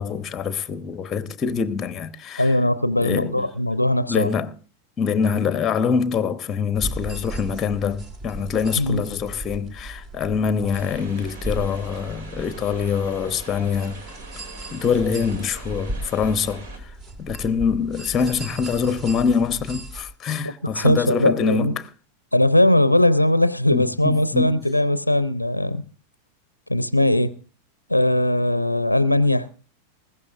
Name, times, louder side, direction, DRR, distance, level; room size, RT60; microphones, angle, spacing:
voice 1, 0.0-2.6 3.0-3.5 4.1-4.5 5.0-14.0 14.7-16.9 17.2-21.9 23.7-24.7, left 6 dB, 25° left, 0.9 m, -24 dB
voice 2, 2.4-4.3 8.8-9.0 20.6-21.7 22.3-25.8 26.7-27.3 27.9-29.5, left 1 dB, 85° left, 0.5 m, -19 dB
sound 1, 6.7-20.0, right 1 dB, 25° right, 2.0 m, -36 dB
sound 2, 10.7-16.8, right 3 dB, 55° right, 2.7 m, -43 dB
20.5 x 15.5 x 2.5 m
figure-of-eight pair, 90°, 0 cm